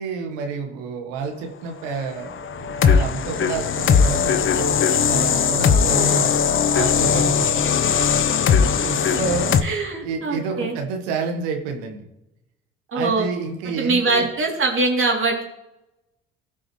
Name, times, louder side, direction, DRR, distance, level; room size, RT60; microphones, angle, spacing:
voice 1, 0.0-4.8 5.1-6.3 6.7-7.9 8.8-9.6 10.0-12.1 12.9-14.2, right 5 dB, 80° right, 4 dB, 1.4 m, -29 dB
sound 1, 2.3-9.6, left 7 dB, 40° left, 0.8 m, -19 dB
voice 2, 5.7-6.2 9.1-9.2 9.6-10.7 12.9-13.3 13.8-15.4, right 3 dB, 40° right, 0 dB, 3.0 m, -23 dB
16.0 x 6.2 x 3.2 m, 0.92 s
hypercardioid pair, 60°, 31 cm